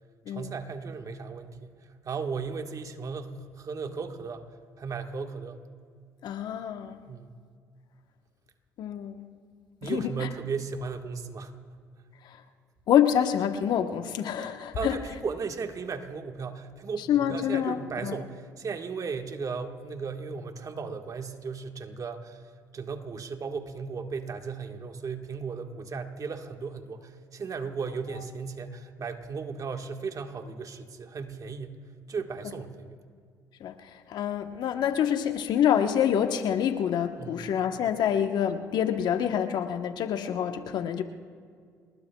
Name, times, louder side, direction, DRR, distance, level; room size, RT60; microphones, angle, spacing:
voice 1, 0.3-1.7 2.0-4.5 4.8-5.6 7.1-7.4 9.8-11.5 12.0-12.1 14.7-22.4 22.7-31.8 32.1-33.0 37.2-37.5, right 5 dB, 45° right, 5 dB, 1.6 m, -36 dB
voice 2, 6.2-7.0 8.8-9.3 9.8-10.3 12.2-12.4 12.9-15.0 17.1-18.2 28.2-28.3 33.6-41.0, left 9 dB, 65° left, 7 dB, 1.1 m, -27 dB
28.5 x 20.5 x 2.3 m, 2.1 s
hypercardioid pair, 55°, 8 cm